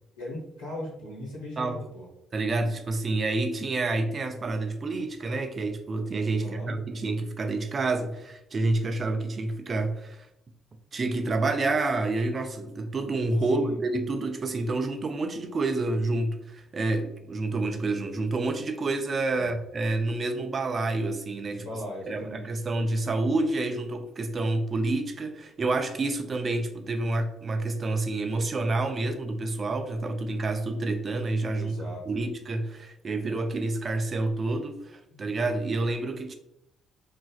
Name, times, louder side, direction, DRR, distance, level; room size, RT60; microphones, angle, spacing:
voice 1, 0.2-2.1 6.3-6.7 13.5-13.8 19.3-19.5 21.5-22.5 31.5-32.1 35.1-35.3, equal, 90° left, 1.1 m, -38 dB
voice 2, 2.3-10.3 10.9-21.6 22.1-36.3, right 2 dB, 40° right, 0.4 m, -28 dB
3.0 x 2.4 x 2.3 m
hypercardioid pair, 45°, 0 cm